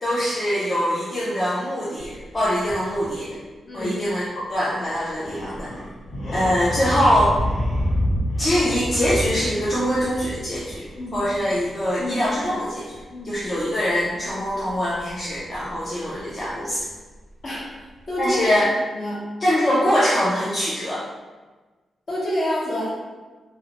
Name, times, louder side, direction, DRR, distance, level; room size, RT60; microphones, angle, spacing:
voice 1, 0.0-3.4 3.7-5.7 6.3-7.4 8.4-10.9 11.1-16.8 18.2-18.7 19.4-21.1, equal, 30° left, -8 dB, 0.5 m, -23 dB
sound 1, 2.0-3.2 3.8-3.9 4.1-4.2 4.9-16.4 16.8-16.9, equal, 75° left, 0.7 m, -29 dB
voice 2, 18.1-19.2 22.1-22.9, equal, 50° left, -7 dB, 1.0 m, -27 dB
2.5 x 2.1 x 2.9 m, 1.3 s
wide cardioid pair, 115°, 0 cm